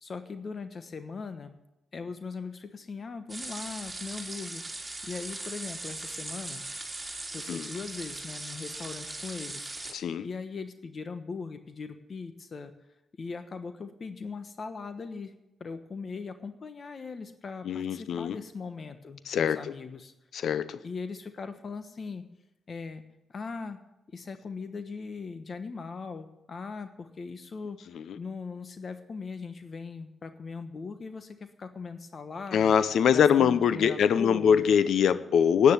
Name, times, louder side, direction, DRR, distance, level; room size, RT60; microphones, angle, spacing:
voice 1, 0.0-1.5 1.9-6.6 7.3-9.7 10.0-12.7 13.2-15.3 15.6-20.1 20.8-22.2 22.7-23.0 23.3-23.8 24.1-32.8 33.1-34.6, left 4 dB, 50° left, 9 dB, 1.1 m, -39 dB
sound 1, 3.3-9.9, right 2 dB, 20° right, 3.6 m, -39 dB
voice 2, 9.9-10.3 17.7-18.4 19.3-19.6 20.3-20.8 28.0-28.2 32.5-35.7, left 7 dB, 75° left, 15 dB, 0.6 m, -23 dB
9.9 x 9.3 x 9.5 m, 0.91 s
supercardioid pair, 60°, 0 cm